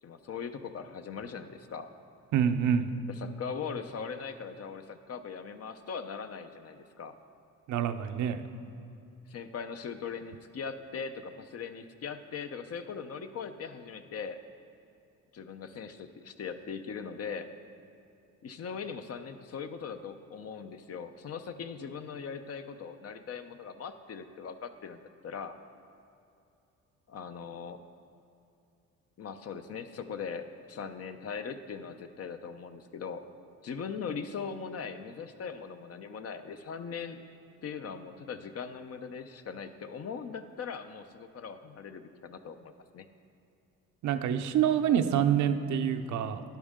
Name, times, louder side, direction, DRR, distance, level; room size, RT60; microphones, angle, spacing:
voice 1, 0.0-1.9 3.1-7.2 9.3-14.4 15.3-17.5 18.4-25.5 27.1-27.8 29.2-33.2 33.6-37.2 37.6-43.1, left 6 dB, 55° left, 8 dB, 0.7 m, -40 dB
voice 2, 2.3-2.9 7.7-8.4 44.0-46.4, right 9 dB, 70° right, 8 dB, 0.7 m, -26 dB
11.5 x 10.5 x 3.7 m, 2.7 s
cardioid pair, 90°, 30 cm